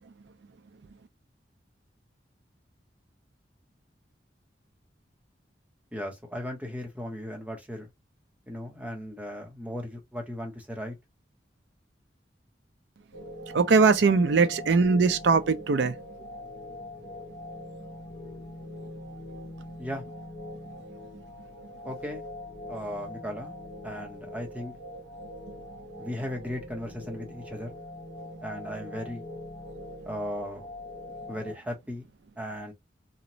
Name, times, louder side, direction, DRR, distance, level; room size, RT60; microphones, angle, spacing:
voice 1, 5.9-7.9 8.5-11.0 19.8-20.0 21.8-22.2 22.7-23.5 23.8-24.7 26.0-27.8 28.4-29.2 30.1-30.7 31.3-32.1 32.4-32.7, equal, 10° right, 0.7 m, -36 dB
sound 1, 13.1-31.5, left 1 dB, 60° left, 0.9 m, -42 dB
voice 2, 13.5-16.0, right 4 dB, 70° right, 0.4 m, -21 dB
2.9 x 2.1 x 2.5 m
head